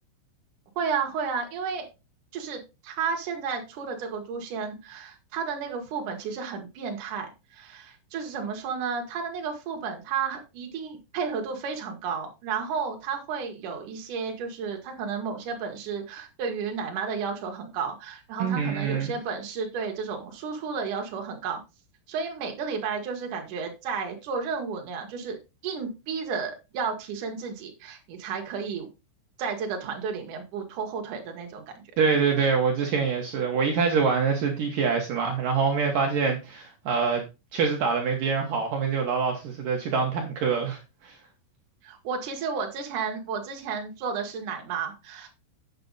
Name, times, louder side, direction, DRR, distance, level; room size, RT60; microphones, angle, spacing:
voice 1, 0.8-1.9 2.3-21.6 22.1-25.4 25.6-28.9 29.4-31.8 41.8-45.3, right 5 dB, 65° right, 2.0 m, -32 dB
voice 2, 18.4-19.1 32.0-37.2 37.5-41.2, right 5 dB, 80° right, 1.9 m, -25 dB
8.1 x 7.9 x 4.0 m
omnidirectional pair, 6.0 m